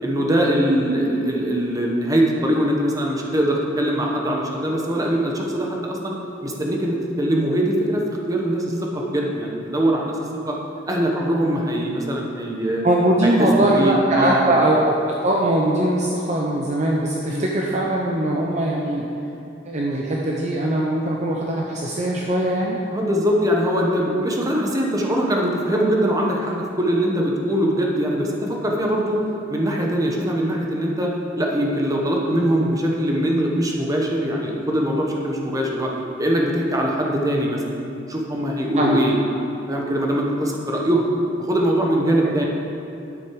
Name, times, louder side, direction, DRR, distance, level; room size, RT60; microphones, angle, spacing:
voice 1, 0.0-6.1 6.4-10.1 10.4-10.6 10.9-12.8 13.2-14.4 17.3-17.5 22.9-29.2 29.5-35.9 36.2-37.6 38.1-39.2 39.7-41.1 41.4-42.5, equal, 20° right, -1 dB, 1.2 m, -22 dB
voice 2, 12.8-14.9 15.2-19.1 19.6-22.8 38.8-39.0, right 1 dB, 40° right, -2 dB, 0.8 m, -21 dB
10.0 x 8.3 x 4.8 m, 2.6 s
head